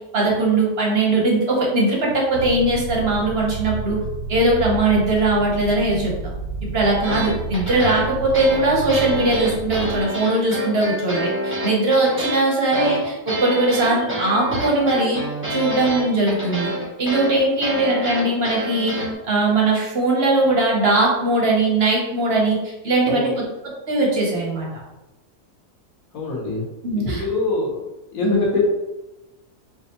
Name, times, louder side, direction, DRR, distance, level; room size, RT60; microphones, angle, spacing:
voice 1, 0.1-4.0 4.3-6.1 6.7-15.2 15.5-16.7 17.0-23.3 23.6-24.7 26.8-27.2 28.2-28.5, right 2 dB, 55° right, -2 dB, 0.8 m, -20 dB
sound 1, 2.3-10.0, right 4 dB, 85° right, 1.1 m, -30 dB
sound 2, 7.0-19.1, equal, 10° right, 0.6 m, -27 dB
voice 2, 26.1-26.6 27.1-27.8 28.1-28.6, left 3 dB, 60° left, -3 dB, 1.4 m, -23 dB
4.7 x 2.3 x 2.8 m, 1.0 s
omnidirectional pair, 1.7 m